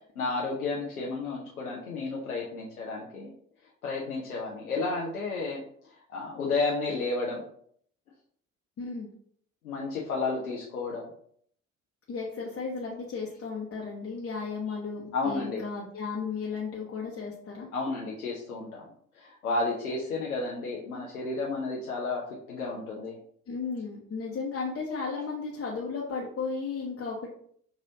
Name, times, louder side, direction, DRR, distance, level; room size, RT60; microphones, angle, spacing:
voice 1, 0.2-3.3 3.8-5.6 6.1-7.4 9.6-11.0 15.1-15.6 17.7-18.8 19.1-22.2 22.5-23.2, left 3 dB, 80° left, -3 dB, 0.7 m, -32 dB
voice 2, 8.8-9.1 12.1-17.7 23.5-27.3, left 4 dB, 30° left, -4 dB, 0.9 m, -34 dB
5.5 x 3.0 x 2.7 m, 0.63 s
figure-of-eight pair, 50°, 43 cm